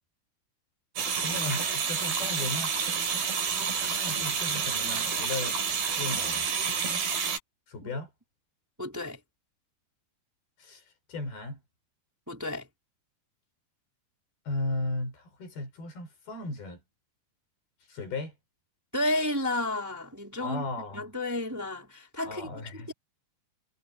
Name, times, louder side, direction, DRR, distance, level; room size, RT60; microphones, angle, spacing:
sound 1, 1.0-7.4, right 6 dB, 65° right, 6.0 m, -29 dB
voice 1, 1.2-2.8 3.9-5.6 6.0-6.5 7.7-8.1 10.6-11.6 14.5-16.8 17.9-18.3 20.4-21.0 22.2-22.9, left 2 dB, 70° left, 8.2 m, -36 dB
voice 2, 8.8-9.2 12.3-12.7 18.9-20.6 20.9-22.5 22.9-23.0, left 1 dB, 5° right, 3.5 m, -31 dB
omnidirectional pair, 4.6 m